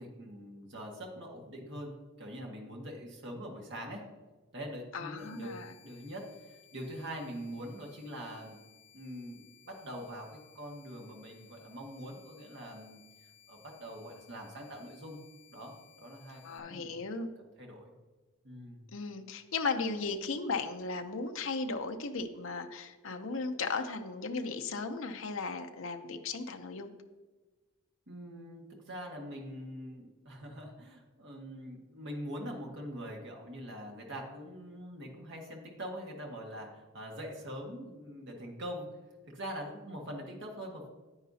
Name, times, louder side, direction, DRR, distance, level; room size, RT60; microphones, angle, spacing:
voice 1, 0.0-4.0 4.5-8.6 8.9-13.0 13.5-15.2 15.5-17.1 17.6-17.9 18.4-18.8 28.1-38.9 39.3-40.9, equal, 55° right, 0 dB, 1.6 m, -43 dB
voice 2, 4.9-5.8 16.4-17.3 18.9-26.9, left 4 dB, 65° left, 6 dB, 0.7 m, -36 dB
sound 1, 5.2-16.6, left 9 dB, 35° left, 1.2 m, -61 dB
9.7 x 9.3 x 2.8 m, 1.3 s
head